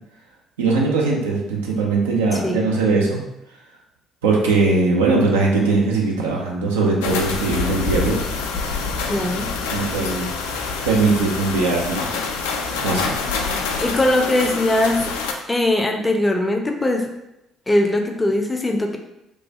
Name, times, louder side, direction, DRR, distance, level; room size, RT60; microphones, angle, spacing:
voice 1, 0.6-3.2 4.2-8.2 9.7-10.3 10.8-12.1 12.8-13.1, right 3 dB, 75° right, -2 dB, 0.5 m, -20 dB
voice 2, 2.3-2.7 9.1-9.5 13.8-15.1 15.5-17.1 17.7-19.0, left 1 dB, 15° left, 3 dB, 0.5 m, -20 dB
sound 1, 7.0-15.3, left 4 dB, 75° left, 0.3 m, -26 dB
3.0 x 2.2 x 2.8 m, 0.87 s
figure-of-eight pair, 50°, 0 cm